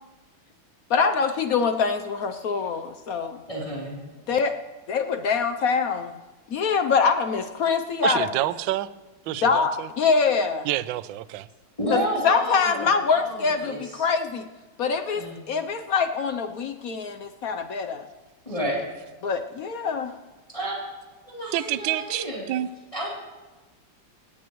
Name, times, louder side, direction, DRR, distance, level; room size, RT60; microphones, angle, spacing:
voice 1, 0.9-3.4 4.3-4.5 4.9-6.2 6.5-8.3 9.4-10.7 11.9-14.4 14.8-18.1 19.2-20.1, left 5 dB, 65° left, 8 dB, 0.9 m, -24 dB
voice 2, 3.5-4.0 11.8-14.1 15.1-15.4 18.4-18.9 20.5-20.8 21.3-22.5 22.9-23.1, right 1 dB, 15° left, -5 dB, 3.2 m, -30 dB
voice 3, 8.0-8.9 9.3-9.9 10.6-11.5 21.5-22.7, right 15 dB, 75° right, 15 dB, 1.2 m, -28 dB
19.0 x 17.5 x 3.1 m, 1.2 s
omnidirectional pair, 2.3 m